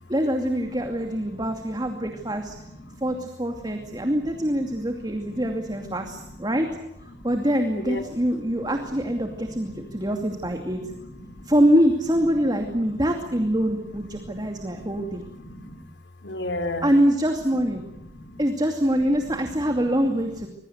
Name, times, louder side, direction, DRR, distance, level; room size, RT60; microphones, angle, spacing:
voice 1, 0.1-2.5 3.0-6.7 7.2-10.8 11.5-15.2 16.8-17.8 18.4-20.5, equal, 20° right, 4 dB, 2.5 m, -24 dB
voice 2, 2.2-3.1 3.7-4.5 5.1-5.6 6.1-6.3 7.8-8.0 8.5-8.6 9.2-10.2 10.6-11.5 12.3-12.5 12.8-13.0 14.0-15.8 16.2-16.9 18.0-18.4 19.5-19.8, left 1 dB, 75° left, 8 dB, 3.2 m, -38 dB
26.0 x 22.5 x 8.0 m, 0.86 s
head